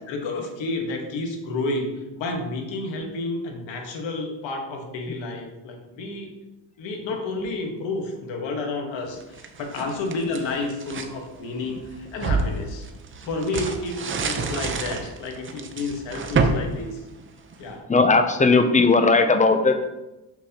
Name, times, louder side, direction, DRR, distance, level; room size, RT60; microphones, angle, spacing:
voice 1, 0.1-6.3 6.8-12.9 13.2-17.0 17.6-17.8, left 2 dB, 80° left, 2 dB, 1.4 m, -30 dB
sound 1, 9.2-11.1 11.7-17.7, right 4 dB, 30° right, 0.6 m, -28 dB
voice 2, 17.9-19.9, left 3 dB, 15° left, 7 dB, 0.5 m, -17 dB
6.4 x 6.2 x 2.9 m, 1.0 s
cardioid pair, 120°, 45 cm